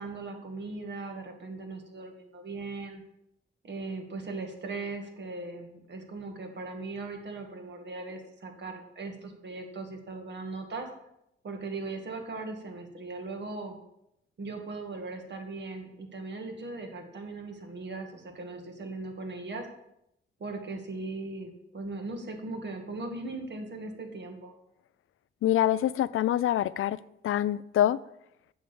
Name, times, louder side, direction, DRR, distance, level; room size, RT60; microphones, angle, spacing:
voice 1, 0.0-3.0 3.6-10.9 11.4-13.8 14.4-19.7 20.4-24.5, right 3 dB, 60° right, 4 dB, 2.1 m, -39 dB
voice 2, 25.4-28.0, left 12 dB, 85° left, 17 dB, 0.4 m, -26 dB
8.9 x 6.4 x 7.0 m, 0.80 s
cardioid pair, 85°, 21 cm